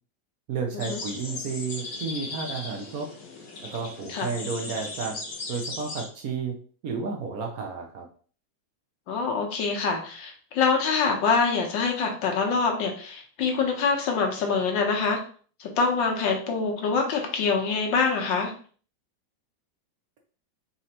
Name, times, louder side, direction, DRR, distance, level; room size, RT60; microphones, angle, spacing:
voice 1, 0.5-3.1 3.7-5.2 5.5-6.5 6.8-8.1, right 5 dB, 65° right, 1 dB, 1.0 m, -32 dB
sound 1, 0.8-6.1, left 3 dB, 60° left, 1.3 m, -37 dB
voice 2, 9.1-15.2 15.6-18.5, left 5 dB, 80° left, 2 dB, 1.7 m, -25 dB
4.2 x 3.8 x 2.9 m, 0.43 s
omnidirectional pair, 2.0 m